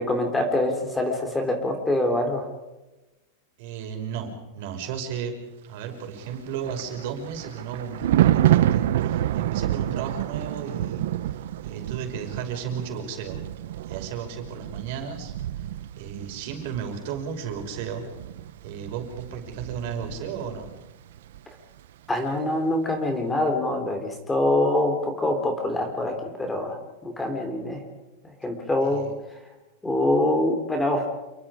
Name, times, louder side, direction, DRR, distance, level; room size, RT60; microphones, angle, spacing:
voice 1, 0.0-2.5 22.1-27.8 28.2-29.5 29.8-31.1, left 1 dB, 10° left, 4 dB, 3.4 m, -25 dB
voice 2, 3.6-5.4 5.6-11.4 11.6-13.4 13.8-15.7 16.0-18.1 18.6-20.7 28.9-29.1, right 7 dB, 55° right, 3 dB, 5.7 m, -34 dB
Thunder, 6.3-20.8 21.1-21.4, right 12 dB, 70° right, 0.9 m, -28 dB
29.0 x 22.5 x 5.1 m, 1.0 s
supercardioid pair, 160°, 0 cm